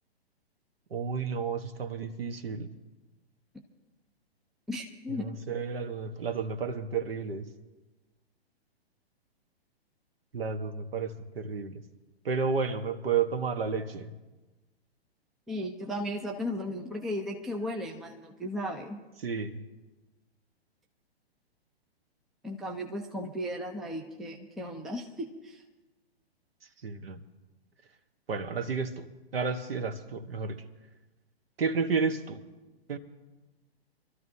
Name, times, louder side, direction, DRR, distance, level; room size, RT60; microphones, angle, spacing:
voice 1, 0.9-2.7 5.1-7.5 10.3-11.8 12.2-14.1 19.2-19.6 26.8-27.2 28.3-29.1 29.3-30.6 31.6-32.4 32.9-33.0, right 5 dB, 65° right, 8 dB, 1.4 m, -31 dB
voice 2, 4.7-5.3 15.5-19.0 22.4-25.6, left 1 dB, ahead, 1 dB, 0.5 m, -35 dB
26.0 x 13.0 x 2.8 m, 1.2 s
figure-of-eight pair, 120°, 32 cm